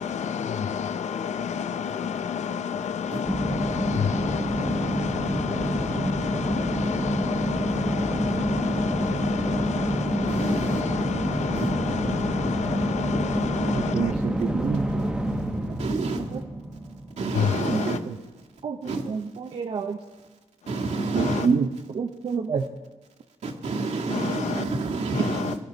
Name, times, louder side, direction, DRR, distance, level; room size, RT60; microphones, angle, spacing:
voice 1, 0.0-14.1 17.3-18.0 21.2-21.5 24.1-24.6 25.1-25.5, left 7 dB, 65° left, 12 dB, 0.6 m, -29 dB
sound 1, 3.2-17.7, right 1 dB, 5° right, 1.2 m, -28 dB
voice 2, 10.3-10.8 11.6-11.7 15.8-16.2 17.2-18.0 18.9-19.0 20.7-21.5 23.4-25.6, right 3 dB, 65° right, 0 dB, 1.8 m, -28 dB
voice 3, 13.7-15.1 15.7-16.0 16.3-16.5 17.7-18.2 18.6-20.0 21.1-22.7 25.2-25.3, right 5 dB, 45° right, 5 dB, 0.7 m, -28 dB
21.5 x 12.5 x 4.0 m, 1.2 s
wide cardioid pair, 150°, 13 cm